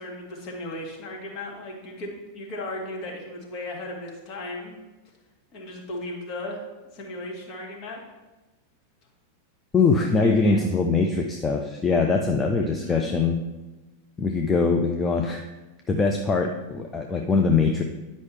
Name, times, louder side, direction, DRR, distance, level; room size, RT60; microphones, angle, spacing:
voice 1, 0.0-4.7 5.5-6.6 6.9-8.0 10.2-10.6 12.5-13.1, left 1 dB, 40° left, -2 dB, 2.0 m, -36 dB
voice 2, 9.7-13.4 14.2-15.5 15.9-17.8, left 4 dB, 20° left, 2 dB, 0.6 m, -22 dB
9.7 x 5.3 x 3.4 m, 1.1 s
figure-of-eight pair, 90°, 0 cm